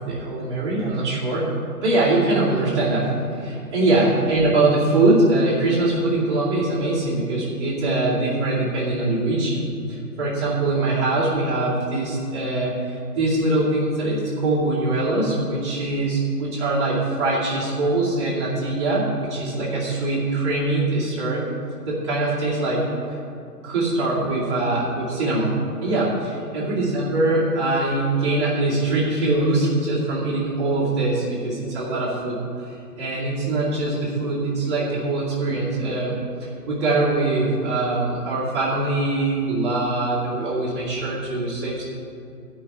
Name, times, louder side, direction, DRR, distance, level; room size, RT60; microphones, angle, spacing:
voice 1, 0.0-1.5 1.8-3.1 3.4-21.4 21.9-22.9 23.6-25.5 25.8-41.8, right 2 dB, 15° right, -8 dB, 2.3 m, -22 dB
11.5 x 5.6 x 8.9 m, 2.6 s
hypercardioid pair, 165°, 48 cm